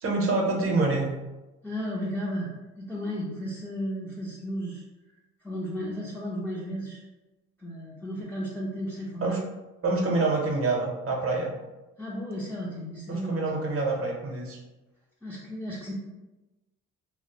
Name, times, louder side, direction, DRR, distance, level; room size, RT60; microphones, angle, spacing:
voice 1, 0.0-1.1 9.2-9.4 9.8-11.5 13.1-14.6, right 3 dB, 50° right, 0 dB, 0.7 m, -26 dB
voice 2, 1.6-4.8 5.4-7.0 7.6-9.4 12.0-13.4 15.2-15.9, equal, 5° left, -6 dB, 0.4 m, -34 dB
2.2 x 2.0 x 2.7 m, 1.1 s
cardioid pair, 90°, 30 cm